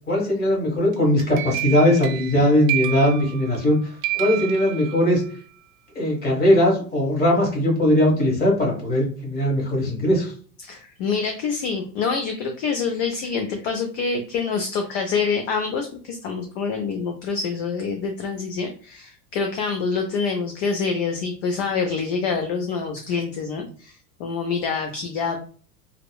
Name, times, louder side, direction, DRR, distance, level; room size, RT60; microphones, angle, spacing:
voice 1, 0.1-3.8 4.1-5.2 5.9-10.3, left 1 dB, 20° left, -2 dB, 1.2 m, -19 dB
sound 1, 0.9-3.7 4.0-5.3, right 17 dB, 55° right, 0.6 m, -30 dB
voice 2, 10.6-23.9 24.2-25.4, left 5 dB, 50° left, 4 dB, 0.5 m, -26 dB
2.8 x 2.0 x 2.2 m, 0.42 s
hypercardioid pair, 105°, 49 cm